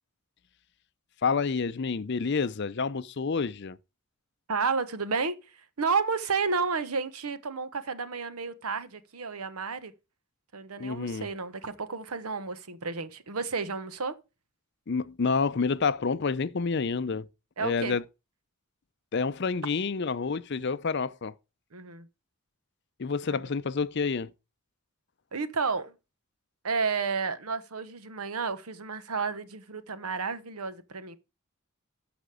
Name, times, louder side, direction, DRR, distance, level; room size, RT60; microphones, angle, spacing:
voice 1, 1.2-3.8 10.8-11.3 14.9-17.3 17.6-18.0 19.1-21.3 23.0-24.3, left 5 dB, 50° left, 0.5 m, -28 dB
voice 2, 4.5-9.9 10.5-14.1 17.6-18.0 21.7-22.1 23.3-23.5 25.3-25.9 26.6-31.2, right 5 dB, 85° right, 1.0 m, -31 dB
13.5 x 5.1 x 4.9 m
head